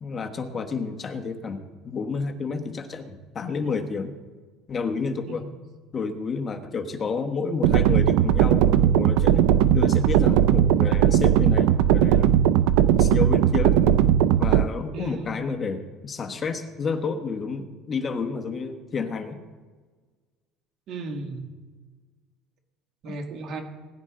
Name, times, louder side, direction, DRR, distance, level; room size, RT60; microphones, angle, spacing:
voice 1, 0.0-4.1 4.7-5.4 5.9-9.4 9.7-12.3 13.0-14.0 14.4-19.4 23.1-23.2, left 4 dB, 20° left, 7 dB, 1.2 m, -30 dB
sound 1, 7.6-14.6, right 10 dB, 75° right, 0.5 m, -18 dB
voice 2, 14.9-15.5 20.9-21.5 23.0-23.6, right 2 dB, 40° right, 4 dB, 2.0 m, -35 dB
20.5 x 10.5 x 3.8 m, 1.4 s
cardioid pair, 175°, 0 cm